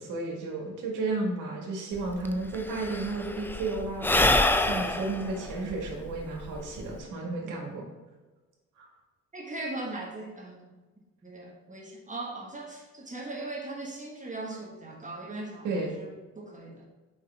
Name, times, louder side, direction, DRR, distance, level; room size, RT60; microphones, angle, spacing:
voice 1, 0.0-4.1 4.6-7.8 8.8-8.9 15.6-16.0, right 3 dB, 85° right, 0 dB, 1.7 m, -33 dB
Sigh / Breathing, 2.0-2.1 2.2-7.0, left 2 dB, 5° left, 0.4 m, -27 dB
voice 2, 9.3-10.7 11.2-16.9, right 2 dB, 25° right, -2 dB, 1.4 m, -39 dB
6.5 x 5.3 x 3.4 m, 1.2 s
cardioid pair, 90°, 30 cm